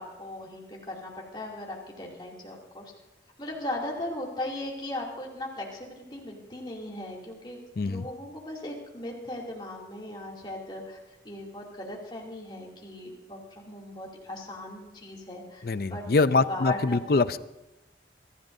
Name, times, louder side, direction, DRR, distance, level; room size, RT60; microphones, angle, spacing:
voice 1, 0.0-2.9 3.4-11.0 11.2-16.0 16.5-17.3, left 1 dB, 25° left, -2 dB, 2.7 m, -38 dB
voice 2, 7.8-8.1 15.6-17.4, left 3 dB, 55° left, 14 dB, 0.5 m, -24 dB
24.0 x 14.5 x 2.7 m, 1.0 s
head